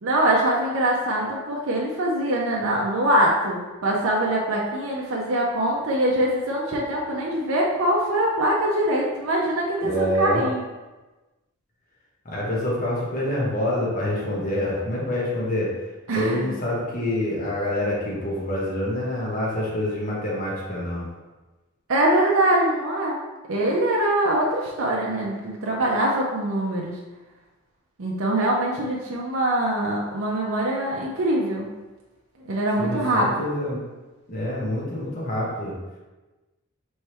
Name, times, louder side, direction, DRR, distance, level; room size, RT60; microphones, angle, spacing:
voice 1, 0.0-10.6 16.1-16.5 21.9-23.2 23.5-27.0 28.0-31.7 32.5-33.4, right 1 dB, 65° right, -3 dB, 0.6 m, -23 dB
voice 2, 9.8-10.4 12.2-15.7 16.1-21.1 32.8-33.8 34.3-35.8, left 1 dB, 35° left, -6 dB, 1.0 m, -26 dB
3.4 x 3.1 x 4.3 m, 1.2 s
head